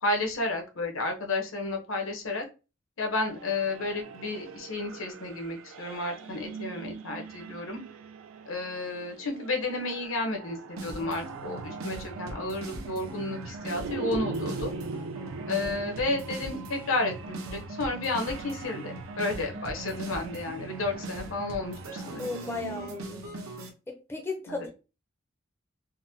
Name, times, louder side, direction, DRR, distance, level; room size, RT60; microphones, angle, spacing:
voice 1, 0.0-2.4 3.0-7.8 8.5-14.7 15.5-22.3 24.5-24.7, left 2 dB, 75° left, 0.9 m, -32 dB
sound 1, 3.2-23.1, right 4 dB, 70° right, 0.4 m, -42 dB
sound 2, 10.8-23.7, right 2 dB, 85° right, 0.8 m, -40 dB
voice 2, 22.2-23.3 23.9-24.7, left 3 dB, 10° left, 0.5 m, -35 dB
4.0 x 2.1 x 2.7 m
head